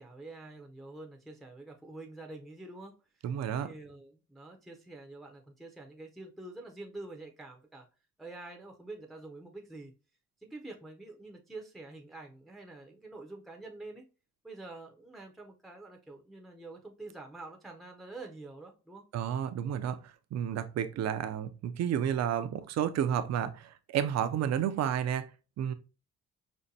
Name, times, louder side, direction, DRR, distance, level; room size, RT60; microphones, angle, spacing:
voice 1, 0.0-2.9 3.6-7.9 8.2-9.9 10.4-14.0 14.4-19.0, right 2 dB, ahead, 0.5 m, -47 dB
voice 2, 3.2-3.7 19.1-25.3 25.6-25.7, right 9 dB, 60° right, 0.5 m, -31 dB
5.2 x 2.1 x 2.6 m
cardioid pair, 90°, 30 cm